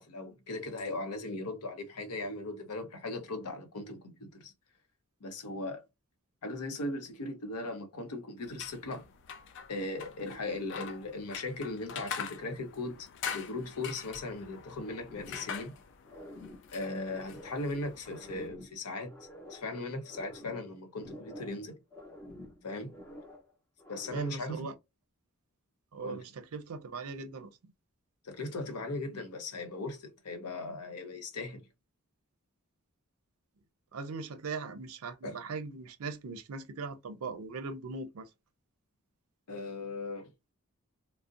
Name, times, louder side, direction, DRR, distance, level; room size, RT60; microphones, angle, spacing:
voice 1, 0.0-4.5 5.2-5.8 6.4-9.1 9.7-15.8 16.7-19.2 19.5-21.8 22.6-23.0 23.9-24.7 26.0-26.2 28.2-31.7 35.2-35.4 39.5-40.3, left 2 dB, 90° left, 0.7 m, -38 dB
sound 1, 8.4-18.5, left 7 dB, 55° left, 0.3 m, -44 dB
sound 2, 15.1-15.8 16.0-17.7 18.0-19.7 20.0-21.7 21.9-23.5 23.8-24.4, left 1 dB, 15° left, 0.6 m, -49 dB
voice 2, 24.1-24.7 25.9-27.5 33.9-38.3, right 4 dB, 75° right, 0.5 m, -40 dB
2.5 x 2.0 x 2.4 m
head